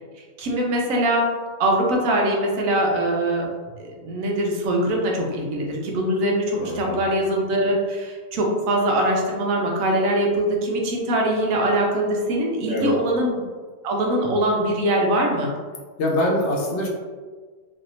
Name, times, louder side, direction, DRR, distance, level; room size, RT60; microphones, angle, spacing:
voice 1, 0.4-1.3 1.6-3.5 3.8-13.4 13.8-15.5, right 1 dB, 80° right, 0 dB, 1.0 m, -22 dB
voice 2, 6.5-7.0 12.7-12.9 16.0-16.9, left 1 dB, 60° left, -1 dB, 0.9 m, -24 dB
3.2 x 2.7 x 2.6 m, 1.5 s
omnidirectional pair, 1.4 m